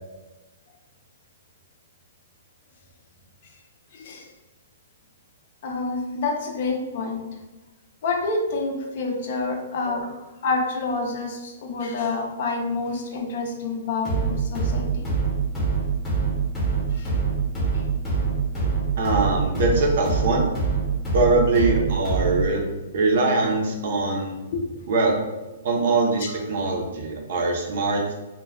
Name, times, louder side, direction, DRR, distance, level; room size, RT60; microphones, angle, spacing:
voice 1, 3.9-4.3 5.6-7.2 8.0-10.1 10.4-15.1 16.9-17.1 24.5-24.8, left 3 dB, 45° left, 2 dB, 0.4 m, -28 dB
sound 1, 14.0-22.5, right 5 dB, 10° left, 0.8 m, -25 dB
voice 2, 19.0-20.5 21.1-22.7 22.9-24.4 24.9-25.1 25.6-28.1, right 2 dB, 50° right, 0 dB, 0.5 m, -22 dB
2.2 x 2.1 x 3.4 m, 1.1 s
hypercardioid pair, 170°, 0 cm